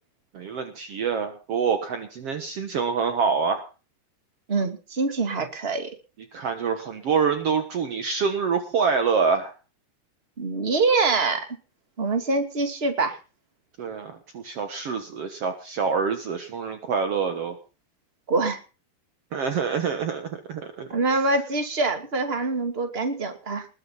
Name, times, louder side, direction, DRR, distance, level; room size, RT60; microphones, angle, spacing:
voice 1, 0.3-3.6 6.3-9.5 13.8-17.5 19.3-20.9, right 5 dB, 80° right, 8 dB, 1.3 m, -26 dB
voice 2, 4.5-5.9 10.4-11.5 12.0-13.2 18.3-18.6 20.9-23.7, right 3 dB, 20° right, 7 dB, 1.7 m, -24 dB
20.5 x 10.5 x 5.6 m, 0.36 s
omnidirectional pair, 5.0 m